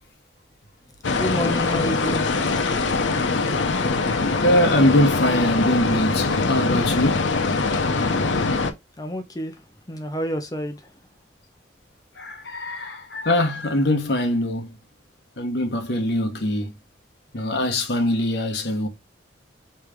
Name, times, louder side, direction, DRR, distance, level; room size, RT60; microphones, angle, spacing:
sound 1, 1.0-8.7, left 3 dB, 80° left, 0.7 m, -23 dB
voice 1, 1.2-2.2 9.0-9.5 9.9-10.8, equal, 20° left, 0.6 m, -28 dB
voice 2, 4.4-7.3 12.2-14.7 15.4-16.7 17.3-18.9, left 1 dB, 60° left, 1.0 m, -22 dB
3.3 x 3.3 x 4.9 m
head